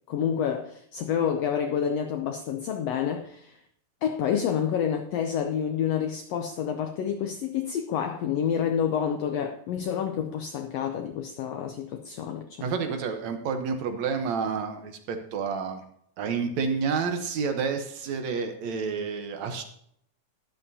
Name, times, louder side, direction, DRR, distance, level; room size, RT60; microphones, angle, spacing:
voice 1, 0.1-3.6 4.0-12.7, left 8 dB, 85° left, 1.4 m, -28 dB
voice 2, 12.6-15.8 16.2-19.6, right 5 dB, 70° right, 2.0 m, -29 dB
13.0 x 11.0 x 2.7 m
omnidirectional pair, 3.6 m